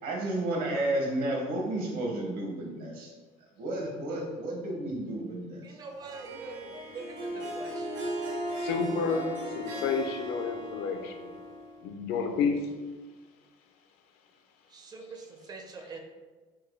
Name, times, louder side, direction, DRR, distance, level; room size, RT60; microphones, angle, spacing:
voice 1, 0.0-3.1 3.6-5.6, right 1 dB, 65° right, -1 dB, 1.3 m, -32 dB
voice 2, 5.6-7.9 14.7-16.0, right 4 dB, 25° right, 3 dB, 0.5 m, -44 dB
Harp, 6.1-11.9, equal, 90° right, 1.5 m, -37 dB
voice 3, 8.6-9.3 9.6-11.3 11.8-12.6, left 5 dB, 80° left, 4 dB, 0.6 m, -30 dB
4.6 x 2.3 x 4.6 m, 1.3 s
cardioid pair, 160°, 16 cm